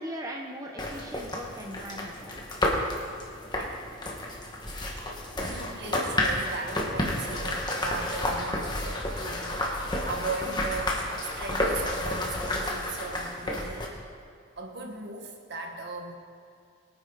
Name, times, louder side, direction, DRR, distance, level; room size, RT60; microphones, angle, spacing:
voice 1, 0.0-2.4 3.5-3.7 10.4-10.7, equal, 15° right, 1 dB, 0.9 m, -39 dB
sound 1, 0.8-13.9, left 1 dB, 20° left, 1.6 m, -31 dB
voice 2, 4.7-5.0 5.4-14.1 14.6-16.2, right 3 dB, 55° right, 2 dB, 1.7 m, -38 dB
23.5 x 9.2 x 4.1 m, 2.4 s
head